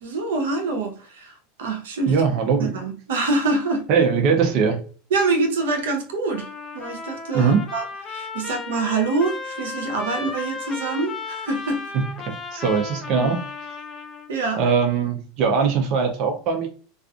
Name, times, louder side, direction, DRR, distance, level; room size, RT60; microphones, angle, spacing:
voice 1, 0.0-2.2 2.6-3.9 5.1-11.9 13.1-13.3 14.3-14.6, right 3 dB, 85° right, 0.7 m, -25 dB
voice 2, 2.1-2.7 3.9-4.8 7.3-7.6 11.9-13.4 14.6-16.7, right 5 dB, 50° right, 0.5 m, -21 dB
Trumpet, 6.3-14.3, left 4 dB, 25° left, 0.5 m, -35 dB
2.4 x 2.4 x 2.3 m
supercardioid pair, 120°, 0 cm